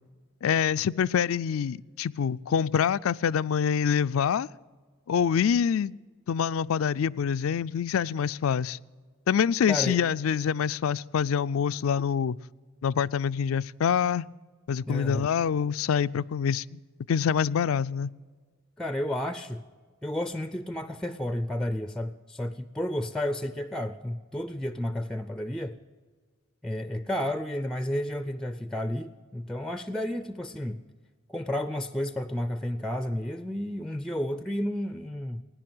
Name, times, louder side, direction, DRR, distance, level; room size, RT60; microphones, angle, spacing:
voice 1, 0.4-4.5 5.1-5.9 6.3-8.8 9.3-12.4 12.8-14.3 14.7-16.8 17.1-18.1, left 7 dB, 85° left, 0.4 m, -26 dB
voice 2, 9.7-10.0 14.9-15.3 18.8-19.6 20.0-25.8 26.6-30.8 31.3-35.4, left 1 dB, 5° left, 0.4 m, -31 dB
17.5 x 10.0 x 7.8 m
head